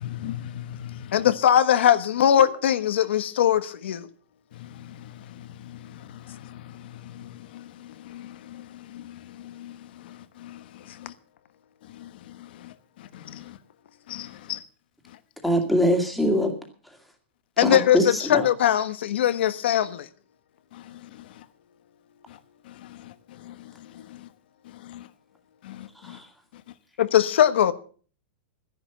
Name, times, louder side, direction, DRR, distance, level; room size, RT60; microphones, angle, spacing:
voice 1, 0.0-1.0 7.2-7.3 8.1-8.6 8.9-9.2 9.4-9.8 10.4-10.6 13.3-13.4 14.1-14.6 23.5-23.6 24.9-25.0 25.7-25.8 26.1-26.2, left 12 dB, 50° left, 1.1 m, -37 dB
voice 2, 1.1-4.1 17.6-20.1 27.0-27.7, left 10 dB, 75° left, 1.2 m, -20 dB
voice 3, 15.4-16.5 17.6-18.4 26.0-26.2, equal, ahead, 2.1 m, -23 dB
13.0 x 10.5 x 7.0 m
supercardioid pair, 165°, 6 cm